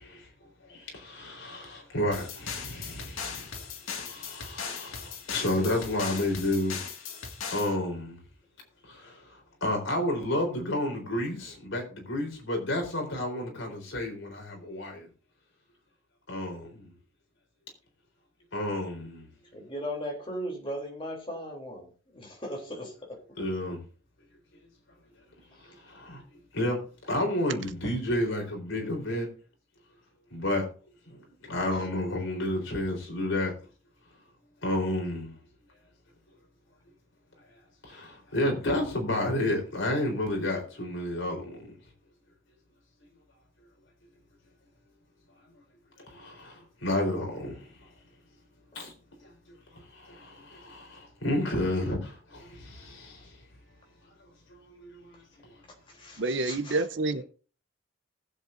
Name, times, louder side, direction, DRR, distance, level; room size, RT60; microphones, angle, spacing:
voice 1, 0.0-6.8 7.5-8.2 8.9-9.3 9.6-15.1 16.3-16.9 18.5-19.3 23.4-23.8 25.7-26.2 26.5-29.3 30.3-30.7 31.1-33.5 34.6-35.3 37.8-41.7 46.1-47.7 48.7-48.9 49.2-53.3 54.7-55.5, left 1 dB, 70° left, 3.9 m, -31 dB
sound 1, 2.1-7.8, left 6 dB, 85° left, 2.0 m, -38 dB
voice 2, 19.5-23.5 25.6-25.7 31.7-31.9 55.9-56.8, equal, 25° left, 3.3 m, -38 dB
voice 3, 56.2-57.2, right 2 dB, 60° right, 0.8 m, -28 dB
19.5 x 7.8 x 2.6 m
head